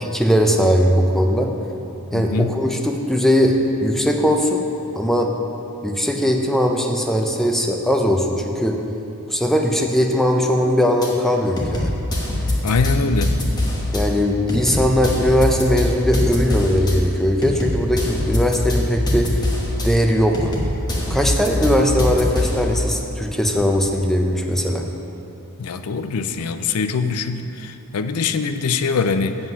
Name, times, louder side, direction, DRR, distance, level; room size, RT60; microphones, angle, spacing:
voice 1, 0.0-1.5 2.1-4.6 5.0-5.3 5.8-8.8 9.3-11.9 13.9-19.3 19.8-20.5 21.1-24.8, equal, ahead, 2 dB, 0.5 m, -19 dB
voice 2, 2.1-2.6 12.6-13.3 25.6-29.4, left 4 dB, 85° left, 9 dB, 0.5 m, -23 dB
sound 1, 11.0-11.1 11.6-14.0 14.5-16.9 17.4-19.9 20.3-22.7, left 1 dB, 20° left, 1.1 m, -23 dB
7.9 x 7.5 x 5.6 m, 2.8 s
head